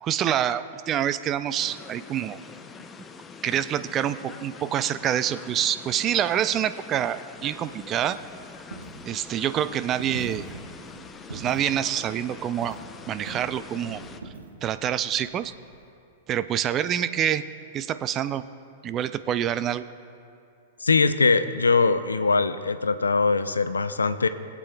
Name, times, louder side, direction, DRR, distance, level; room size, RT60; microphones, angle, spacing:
voice 1, 0.0-2.4 3.4-8.2 9.0-10.4 11.3-12.8 13.1-14.0 14.6-15.5 16.3-17.4 17.7-18.4 18.8-19.8, right 10 dB, 30° right, 13 dB, 0.3 m, -26 dB
sound 1, 1.6-14.2, left 5 dB, 20° left, 0.5 m, -44 dB
Coin (dropping), 7.3-15.9, right 3 dB, 85° right, 0.9 m, -43 dB
voice 2, 20.8-24.3, left 4 dB, 90° left, 12 dB, 0.4 m, -22 dB
21.5 x 8.3 x 2.2 m, 2.6 s
hypercardioid pair, 105°, 0 cm